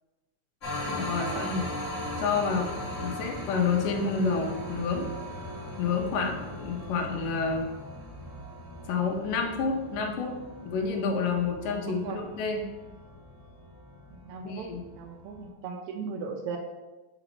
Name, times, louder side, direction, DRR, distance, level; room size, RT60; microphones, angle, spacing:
sound 1, 0.6-15.5, left 1 dB, 30° left, 1.8 m, -39 dB
voice 1, 0.8-1.7 2.2-2.7 3.0-5.1 5.8-7.7 8.9-10.4 10.6-12.6 14.4-14.8, left 5 dB, 85° left, 2 dB, 2.4 m, -29 dB
voice 2, 11.8-12.2 14.3-14.7 15.0-16.6, right 5 dB, 80° right, 3 dB, 1.7 m, -37 dB
5.2 x 4.0 x 5.7 m, 1.1 s
omnidirectional pair, 3.8 m